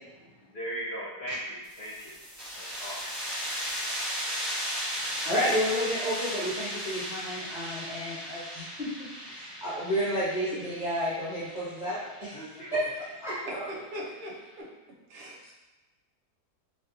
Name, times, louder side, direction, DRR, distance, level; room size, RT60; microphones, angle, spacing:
voice 1, 0.5-2.1 2.6-3.1 12.3-12.8, right 1 dB, 60° left, -9 dB, 0.7 m, -38 dB
sound 1, 1.6-13.0, equal, 15° left, 1.0 m, -36 dB
voice 2, 5.2-12.4 12.7-12.8 13.2-13.7, equal, 30° right, -14 dB, 1.5 m, -31 dB
voice 3, 13.7-14.7 15.1-15.5, equal, 60° right, -4 dB, 0.6 m, -40 dB
3.2 x 2.7 x 2.4 m, 1.1 s
omnidirectional pair, 1.7 m